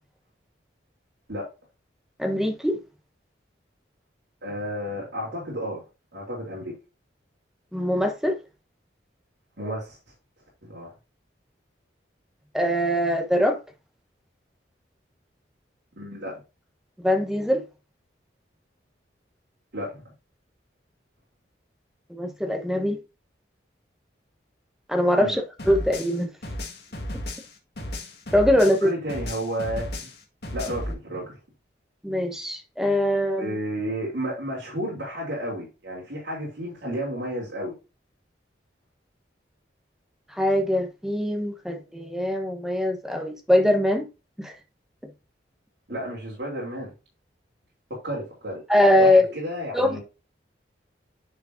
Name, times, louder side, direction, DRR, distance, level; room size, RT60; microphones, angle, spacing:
voice 1, 2.2-2.8 7.7-8.4 12.5-13.6 17.0-17.6 22.1-23.0 24.9-25.4 25.7-26.3 28.3-28.9 32.0-33.5 40.4-44.1 44.4-44.5 48.7-49.2 49.7-50.0, left 1 dB, ahead, 1.1 m, -22 dB
voice 2, 4.4-5.8 6.1-6.7 9.6-10.0 10.6-10.9 16.0-16.4 19.7-20.0 25.2-25.4 28.8-30.1 30.5-31.4 33.4-37.8 45.9-46.9 47.9-50.0, equal, 65° right, 3.6 m, -32 dB
sound 1, 25.6-28.8 29.1-30.9, left 1 dB, 60° left, 1.8 m, -34 dB
10.0 x 4.9 x 2.7 m
head